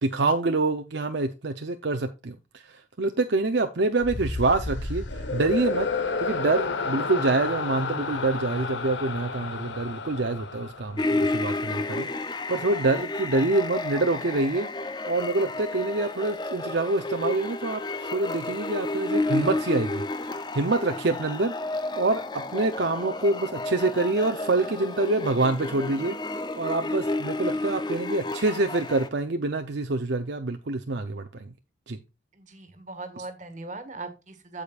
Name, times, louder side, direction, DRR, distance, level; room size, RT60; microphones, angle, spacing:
voice 1, 0.0-5.9 6.2-14.7 15.1-20.0 20.3-21.5 21.9-22.2 22.5-26.2 26.6-31.5 31.9-32.0, right 2 dB, 65° right, 0.7 m, -26 dB
sound 1, 4.0-11.4, left 4 dB, 65° left, 1.2 m, -31 dB
sound 2, 11.0-29.1, left 2 dB, 20° left, 0.5 m, -31 dB
voice 2, 32.3-34.6, right 3 dB, 40° right, 1.6 m, -39 dB
15.0 x 5.1 x 2.4 m
head